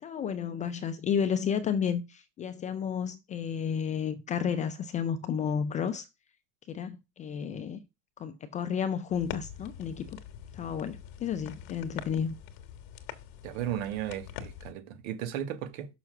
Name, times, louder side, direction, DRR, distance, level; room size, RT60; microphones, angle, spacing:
voice 1, 0.0-6.1 6.7-7.8 8.2-10.2 10.5-12.3, left 7 dB, 20° left, 0.4 m, -32 dB
sound 1, 9.1-14.7, left 10 dB, 50° left, 1.3 m, -44 dB
voice 2, 13.4-15.9, right 10 dB, 75° right, 2.2 m, -35 dB
6.1 x 5.8 x 6.5 m
cardioid pair, 165°, 41 cm